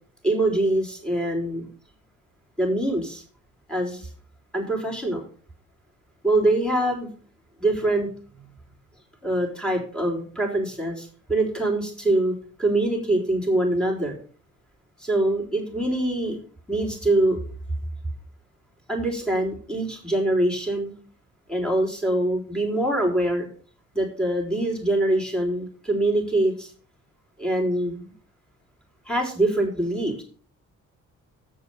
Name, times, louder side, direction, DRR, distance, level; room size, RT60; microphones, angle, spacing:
voice 1, 0.2-1.7 2.6-3.2 3.7-4.1 4.5-5.2 6.2-7.1 7.6-8.1 8.3-8.5 9.2-14.2 15.0-16.4 16.7-17.4 18.9-20.9 21.5-23.5 23.9-26.7 27.4-28.1 29.1-30.2, right 1 dB, 5° left, -1 dB, 3.9 m, -24 dB
8.0 x 6.8 x 5.5 m, 0.43 s
cardioid pair, 90°, 30 cm